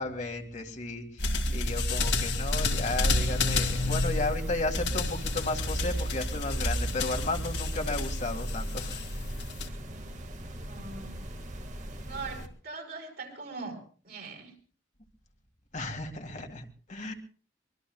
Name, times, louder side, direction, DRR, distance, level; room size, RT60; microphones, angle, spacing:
voice 1, 0.0-9.4 15.7-17.1, left 2 dB, 40° left, 3 dB, 2.0 m, -34 dB
sound 1, 1.2-9.7, left 2 dB, 60° left, 2.2 m, -30 dB
sound 2, 2.5-12.5, equal, 40° right, 1.9 m, -41 dB
voice 2, 10.5-11.2 12.1-13.8 14.0-14.5, right 4 dB, 55° right, 2 dB, 5.1 m, -41 dB
24.5 x 22.5 x 2.3 m, 0.41 s
head